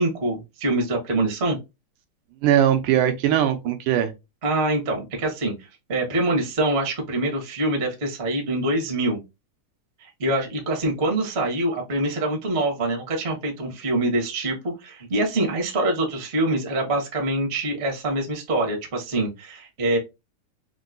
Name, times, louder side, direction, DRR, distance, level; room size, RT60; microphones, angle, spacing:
voice 1, 0.0-1.6 4.4-9.2 10.0-20.0, right 1 dB, 55° right, 0.7 m, -25 dB
voice 2, 2.4-4.1, right 10 dB, 85° right, 2.3 m, -20 dB
5.2 x 2.7 x 2.6 m
omnidirectional pair, 3.7 m